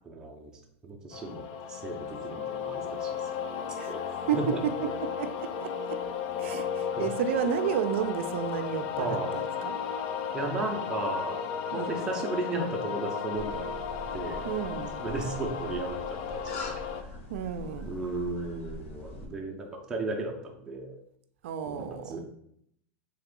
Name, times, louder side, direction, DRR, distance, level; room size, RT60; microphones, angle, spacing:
voice 1, 0.0-0.5 0.8-4.6 6.5-6.7 7.0-7.1 9.0-9.3 10.3-11.4 11.7-13.6 14.1-14.5 15.0-17.1 17.8-21.0 21.7-22.3, right 2 dB, 10° right, 0.4 m, -35 dB
sound 1, 1.1-17.0, left 7 dB, 50° left, 0.4 m, -34 dB
voice 2, 4.3-6.0 6.4-9.7 11.7-12.0 14.4-15.0 17.3-17.9 21.4-22.2, right 8 dB, 75° right, 0.4 m, -32 dB
sound 2, 13.3-19.3, left 2 dB, 90° left, 0.7 m, -43 dB
3.3 x 2.9 x 3.7 m
supercardioid pair, 170°, 7 cm